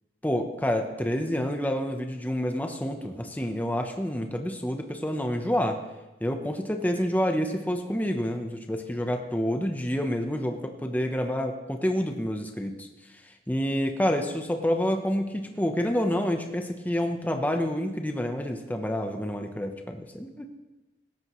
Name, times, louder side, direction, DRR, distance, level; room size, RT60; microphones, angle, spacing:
voice 1, 0.2-5.8 6.2-20.5, equal, 10° left, 4 dB, 0.9 m, -28 dB
17.5 x 13.5 x 3.1 m, 1.1 s
head